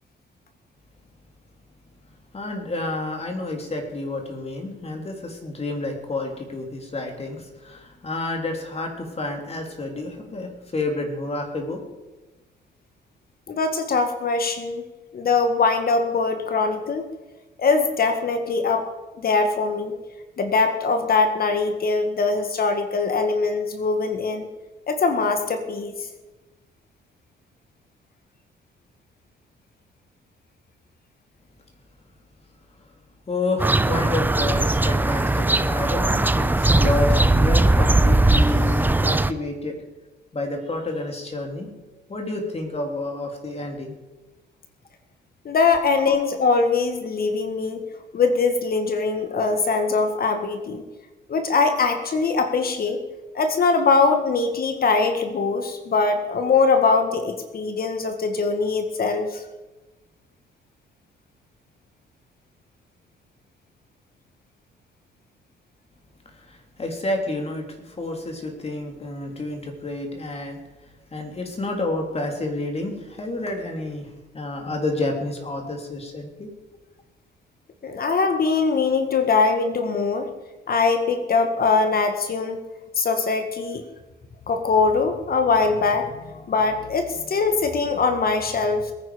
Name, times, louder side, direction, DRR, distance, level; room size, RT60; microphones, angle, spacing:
voice 1, 2.3-11.8 33.3-39.8 40.3-41.7 42.1-44.0 46.1-46.2 66.3-70.6 71.1-74.1 74.3-76.5, left 2 dB, 30° left, 2 dB, 3.5 m, -29 dB
voice 2, 13.5-14.9 15.1-17.0 17.6-18.9 19.2-20.0 20.4-24.5 24.9-26.0 45.5-47.8 48.1-50.8 51.3-53.0 53.4-59.4 77.8-80.3 80.7-82.6 83.0-83.8 84.5-88.9, left 4 dB, 50° left, 7 dB, 1.8 m, -22 dB
sound 1, 33.6-39.3, right 2 dB, 10° right, 0.6 m, -19 dB
21.5 x 9.8 x 5.1 m, 1.1 s
cardioid pair, 90°, 20 cm